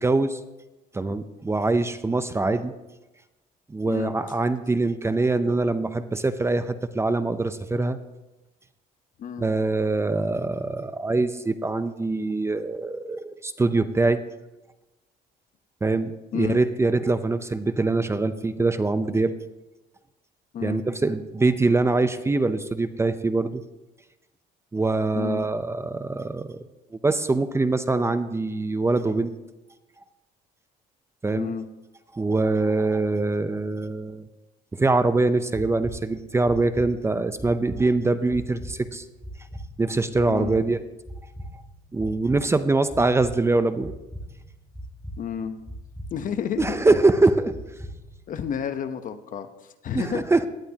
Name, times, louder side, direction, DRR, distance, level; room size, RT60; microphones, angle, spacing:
voice 1, 0.0-0.4 0.9-2.7 3.7-8.0 9.4-14.2 15.8-19.3 20.6-23.6 24.7-26.6 27.0-29.3 31.2-31.5 32.1-34.3 34.7-39.0 39.8-40.8 41.9-43.9 46.6-47.5 49.9-50.5, right 3 dB, 15° right, 11 dB, 0.6 m, -23 dB
voice 2, 3.9-4.2 9.2-9.5 16.3-16.6 20.5-20.8 25.1-25.5 31.3-31.7 40.3-40.6 45.2-45.6 46.1-46.8 48.3-50.2, left 8 dB, 50° left, 10 dB, 0.9 m, -31 dB
sound 1, 35.5-48.3, equal, ahead, 1.8 m, -41 dB
18.0 x 11.5 x 2.9 m, 1.0 s
cardioid pair, 110°, 17 cm